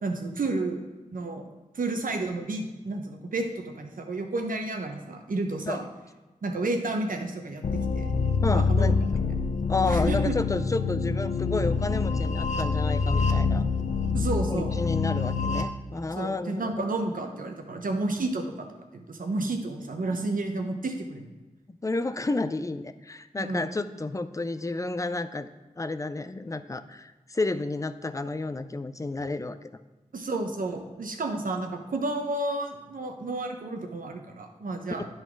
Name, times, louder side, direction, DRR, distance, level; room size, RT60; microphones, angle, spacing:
voice 1, 0.0-0.8 1.1-1.4 1.7-5.8 6.4-7.6 7.9-8.1 8.5-8.9 9.9-10.3 14.1-14.8 16.2-18.7 18.9-21.3 23.4-23.6 30.1-35.1, right 2 dB, 80° right, 4 dB, 0.9 m, -31 dB
sound 1, 7.6-15.6, left 4 dB, 60° left, 0.7 m, -26 dB
voice 2, 8.4-9.0 9.7-13.6 14.4-16.8 21.7-25.5 25.8-29.6, left 3 dB, 25° left, 12 dB, 0.4 m, -31 dB
10.5 x 4.0 x 4.6 m, 1.1 s
wide cardioid pair, 65°, 14 cm